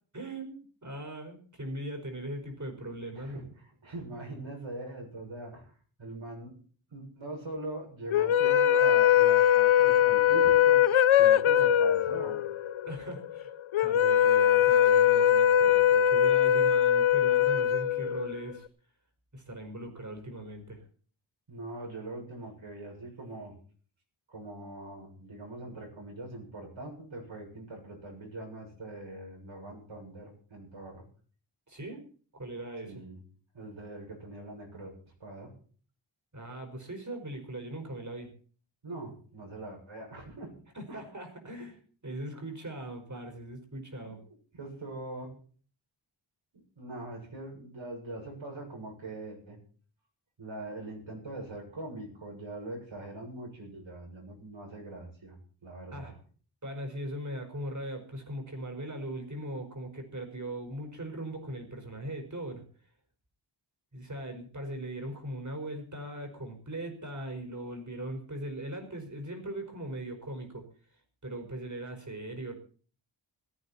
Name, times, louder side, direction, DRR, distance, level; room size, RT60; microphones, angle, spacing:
voice 1, 0.1-3.4 12.9-13.5 13.8-18.7 19.3-20.8 31.7-32.0 32.3-33.0 36.3-38.3 40.7-44.2 55.9-56.2 56.6-62.6 63.9-70.7 71.2-72.5, right 1 dB, 35° right, 4 dB, 5.2 m, -39 dB
voice 2, 3.1-3.5 3.8-5.7 6.0-6.5 6.9-10.8 11.2-12.4 21.5-23.5 24.3-31.0 32.8-33.2 33.5-34.9 35.2-35.5 38.8-40.5 40.9-41.1 44.1-44.2 44.6-45.3 46.8-49.6 50.4-55.4 55.6-56.2, right 2 dB, 70° right, 0 dB, 7.1 m, -42 dB
sound 1, 8.1-18.5, left 10 dB, 80° left, 0.7 m, -22 dB
18.0 x 14.0 x 4.3 m, 0.43 s
wide cardioid pair, 85°, 48 cm